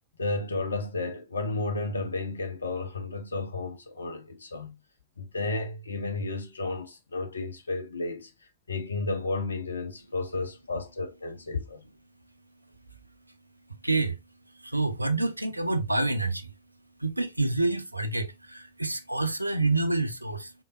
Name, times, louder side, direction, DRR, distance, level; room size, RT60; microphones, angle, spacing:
voice 1, 0.2-4.8 5.2-8.3 8.7-11.8, left 3 dB, 75° left, 0.6 m, -32 dB
voice 2, 13.8-14.2 14.6-16.5 17.0-20.5, right 2 dB, 85° right, 0.4 m, -27 dB
3.7 x 3.2 x 2.4 m
figure-of-eight pair, 90°, 0 cm